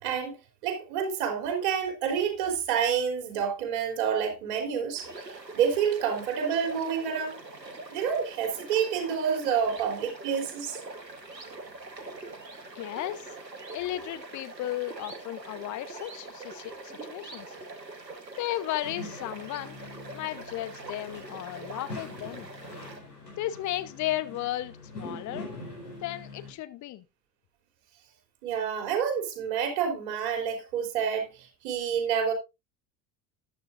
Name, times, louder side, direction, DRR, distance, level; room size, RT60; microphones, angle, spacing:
voice 1, 0.0-0.4 0.6-7.4 7.9-10.8 28.4-32.3, right 7 dB, 60° right, 3.4 m, -28 dB
sound 1, 5.0-23.0, right 2 dB, 85° right, 1.3 m, -44 dB
voice 2, 12.7-13.4 13.7-17.6 18.4-19.8 20.1-22.5 23.4-25.5 26.0-27.0, left 14 dB, 35° left, 0.9 m, -34 dB
sound 2, 18.8-26.5, left 2 dB, 80° left, 4.7 m, -43 dB
13.5 x 9.4 x 2.5 m
figure-of-eight pair, 65°, 49 cm